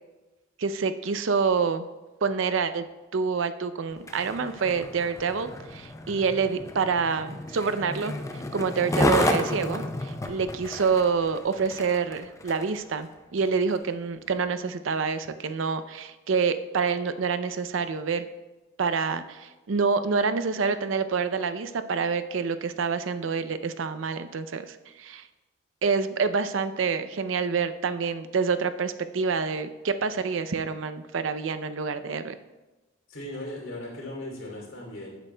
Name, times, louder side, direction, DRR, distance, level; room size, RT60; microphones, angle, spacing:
voice 1, 0.6-1.8 2.2-2.8 3.1-8.1 8.5-18.2 18.8-25.2 25.8-32.3, right 5 dB, 75° right, 11 dB, 0.5 m, -27 dB
Skateboard, 3.9-12.8 13.4-13.5, left 1 dB, 15° left, 0.5 m, -31 dB
voice 2, 33.1-35.1, left 1 dB, 85° left, -1 dB, 2.9 m, -37 dB
15.0 x 8.1 x 2.2 m, 1.1 s
head